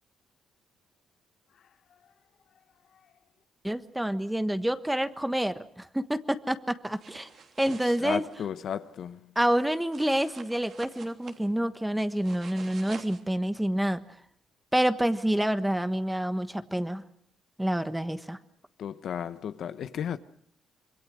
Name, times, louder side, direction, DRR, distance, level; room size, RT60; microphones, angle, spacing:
voice 1, 3.6-7.3 7.6-8.3 9.3-14.0 14.7-17.0 17.6-18.4, right 1 dB, 5° right, 1.3 m, -28 dB
sound 1, 6.9-8.4 9.9-11.4 12.1-13.2, right 5 dB, 60° right, 3.2 m, -48 dB
voice 2, 8.0-9.2 18.8-20.2, left 8 dB, 65° left, 1.0 m, -34 dB
26.5 x 22.5 x 6.4 m
cardioid pair, 90°, 0 cm